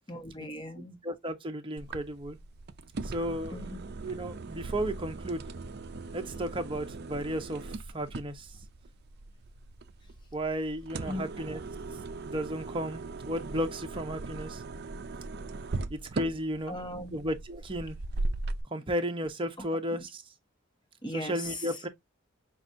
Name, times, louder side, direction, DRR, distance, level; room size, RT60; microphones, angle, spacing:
voice 1, 0.1-1.0 3.5-3.8 11.1-11.2 16.7-17.2 21.0-21.3, left 1 dB, 20° left, 1.1 m, -38 dB
voice 2, 1.0-2.4 3.0-5.5 6.1-8.5 10.3-11.6 12.2-14.6 15.9-16.7 17.1-18.0 18.7-20.2 21.1-21.9, equal, 25° right, 0.9 m, -34 dB
sound 1, 1.8-18.6, right 3 dB, 50° right, 0.5 m, -39 dB
5.9 x 2.5 x 2.7 m
head